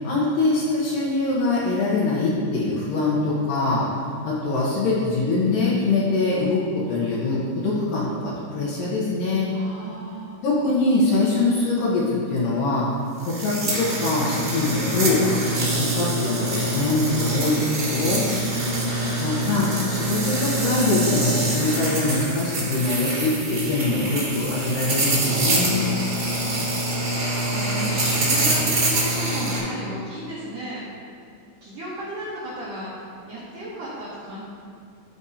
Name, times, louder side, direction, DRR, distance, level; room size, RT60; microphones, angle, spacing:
voice 1, 0.0-3.9 4.2-9.5 10.4-12.9 13.3-18.3 19.2-25.8, left 2 dB, 85° left, -7 dB, 1.9 m, -23 dB
voice 2, 9.5-10.4 18.2-19.2 25.8-30.8 31.6-34.4, right 1 dB, 85° right, -8 dB, 1.8 m, -34 dB
sound 1, 13.2-29.6, right 1 dB, 45° right, 1.6 m, -25 dB
12.0 x 4.9 x 2.8 m, 2.3 s
omnidirectional pair, 5.4 m